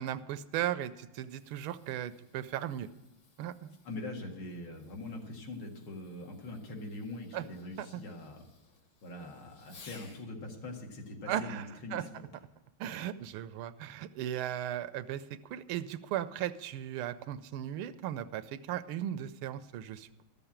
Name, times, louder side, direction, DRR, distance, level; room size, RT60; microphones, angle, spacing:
voice 1, 0.0-2.9 3.4-3.8 7.3-7.4 7.8-8.0 11.3-12.0 12.8-20.2, right 11 dB, 85° right, 13 dB, 1.5 m, -37 dB
Fireworks, 1.1-10.3 12.3-12.7 13.4-13.5, left 4 dB, 55° left, 1.8 m, -60 dB
voice 2, 3.8-8.4 9.0-12.2, left 2 dB, 75° left, 1 dB, 2.7 m, -42 dB
13.0 x 6.9 x 8.7 m, 1.0 s
omnidirectional pair, 2.3 m